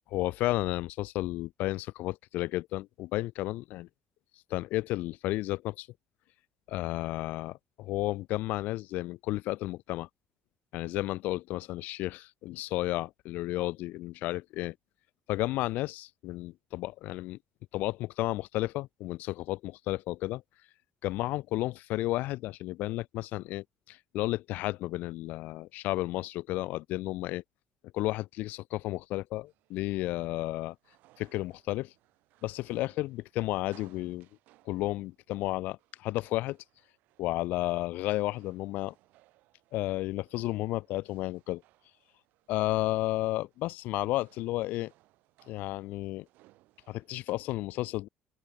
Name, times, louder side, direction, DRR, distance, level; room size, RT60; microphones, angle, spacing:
voice 1, 0.1-3.9 4.5-5.9 6.7-10.1 10.7-14.7 15.3-17.4 17.7-20.4 21.0-27.4 27.9-30.8 31.2-31.9 32.4-34.3 34.7-36.6 37.2-38.9 39.7-41.6 42.5-44.9 45.5-46.3 46.9-48.1, left 17 dB, 60° left, 0.5 m, -32 dB
sound 1, 29.5-47.3, right 18 dB, 60° right, 5.3 m, -65 dB
open air
figure-of-eight pair, 50°, 3 cm